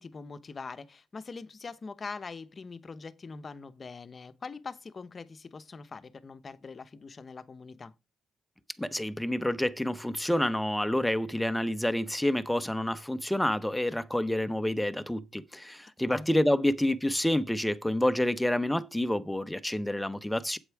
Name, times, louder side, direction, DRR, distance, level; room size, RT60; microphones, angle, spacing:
voice 1, 0.0-7.9 16.1-16.3, left 4 dB, 35° left, 0.9 m, -43 dB
voice 2, 8.8-20.6, left 1 dB, 5° left, 0.8 m, -28 dB
8.0 x 8.0 x 4.7 m
cardioid pair, 90°, 0 cm